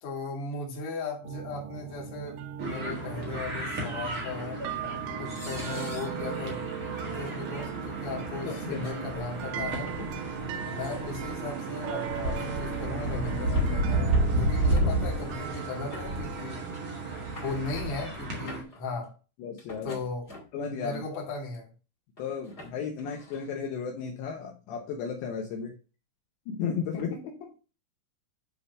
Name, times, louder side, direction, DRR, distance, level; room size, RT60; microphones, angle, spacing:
voice 1, 0.0-4.6 5.2-9.9 10.7-16.6 17.4-19.1 19.8-20.3 20.8-21.7 26.9-27.3, left 4 dB, 45° left, -1 dB, 2.9 m, -37 dB
sound 1, 1.2-17.7, right 8 dB, 75° right, 2.7 m, -38 dB
sound 2, 2.6-18.6, right 1 dB, 50° right, 1.6 m, -32 dB
sound 3, 4.1-4.2 5.3-6.2 7.1-7.2 7.6-7.7 8.7-9.0 9.7-10.1 11.3-11.4 12.1-12.6 13.2-13.8 14.1-14.4 14.8-15.3 15.9-16.5 16.7-16.8 17.1-17.9 18.3-18.8 19.6-20.6 21.2-21.6 22.2-23.5, left 1 dB, 20° left, 1.7 m, -44 dB
voice 2, 8.5-9.2 9.6-9.7 19.4-19.9 20.5-21.0 22.2-25.7 26.5-27.2, left 6 dB, 75° left, 1 dB, 3.1 m, -34 dB
9.8 x 3.8 x 5.5 m, 0.34 s
omnidirectional pair, 5.6 m